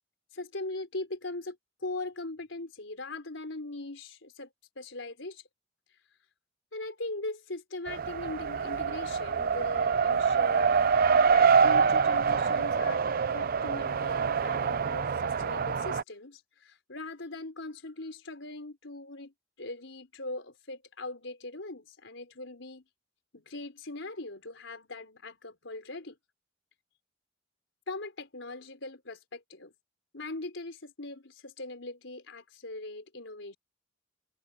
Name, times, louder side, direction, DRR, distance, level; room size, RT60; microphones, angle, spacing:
voice 1, 0.3-1.6 1.8-4.5 4.8-5.4 6.7-10.8 11.3-19.3 19.6-22.8 23.3-26.2 27.9-29.7 30.1-33.5, left 2 dB, 75° left, 4.5 m, -40 dB
Race car auto racing, 7.9-16.0, right 6 dB, 50° right, 0.5 m, -25 dB
head